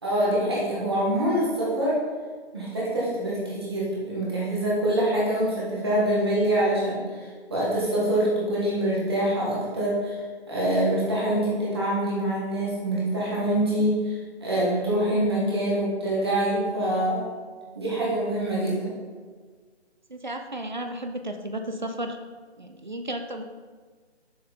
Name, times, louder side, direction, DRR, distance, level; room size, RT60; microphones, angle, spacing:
voice 1, 0.0-2.0 2.5-10.2 10.5-17.2 17.7-18.9, right 1 dB, 20° right, -6 dB, 1.4 m, -25 dB
voice 2, 20.1-22.2 22.6-23.4, right 1 dB, 45° right, 6 dB, 0.5 m, -33 dB
6.6 x 5.5 x 4.1 m, 1.5 s
hypercardioid pair, 180°, 34 cm